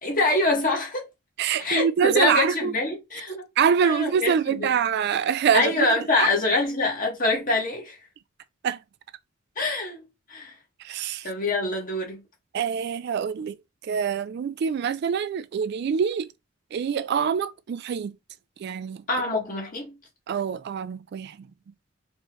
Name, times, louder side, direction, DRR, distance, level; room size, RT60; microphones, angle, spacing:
voice 1, 0.0-1.1 1.6-3.5 3.8-4.7 5.5-8.0 9.6-10.0 10.3-10.5 11.2-12.2 19.1-20.0, left 2 dB, 45° left, 1.7 m, -25 dB
voice 2, 1.4-2.7 3.6-5.9 6.2-6.3 8.6-8.8 10.8-11.3 12.5-13.6 13.9-16.3 16.7-18.1 18.6-19.0 20.3-21.5, right 7 dB, 55° right, 0.3 m, -25 dB
4.4 x 3.1 x 3.0 m
head